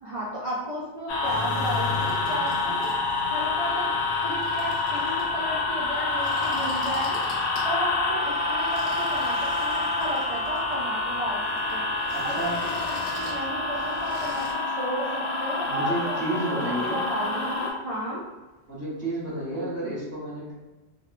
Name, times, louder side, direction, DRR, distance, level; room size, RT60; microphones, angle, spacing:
voice 1, 0.0-2.9 3.3-3.9 4.2-7.2 7.6-11.4 11.7-11.9 12.2-18.2, right 1 dB, 55° right, -6 dB, 0.4 m, -33 dB
sound 1, 1.1-17.7, left 3 dB, 90° left, 0.8 m, -27 dB
sound 2, 1.1-14.5, left 1 dB, 65° left, 1.0 m, -44 dB
sound 3, 1.2-9.0 10.6-11.0 19.4-19.5, left 3 dB, 25° left, 0.6 m, -40 dB
voice 2, 12.1-12.6 15.6-17.0 18.7-20.5, right 1 dB, 15° right, -8 dB, 0.8 m, -31 dB
3.0 x 2.0 x 2.4 m, 1.1 s
omnidirectional pair, 1.1 m